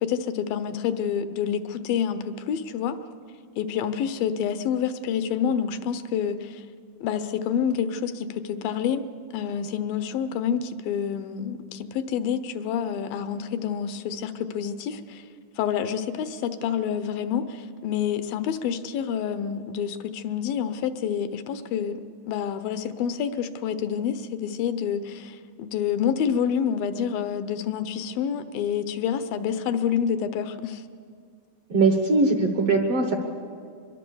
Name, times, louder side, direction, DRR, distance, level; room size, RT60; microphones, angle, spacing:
voice 1, 0.0-3.0 3.6-6.6 7.0-9.1 9.3-15.2 15.6-22.0 22.3-30.8, left 8 dB, 75° left, 11 dB, 2.5 m, -28 dB
voice 2, 31.7-33.2, right 3 dB, 55° right, 4 dB, 1.8 m, -21 dB
23.5 x 22.0 x 7.0 m, 2.2 s
omnidirectional pair, 4.3 m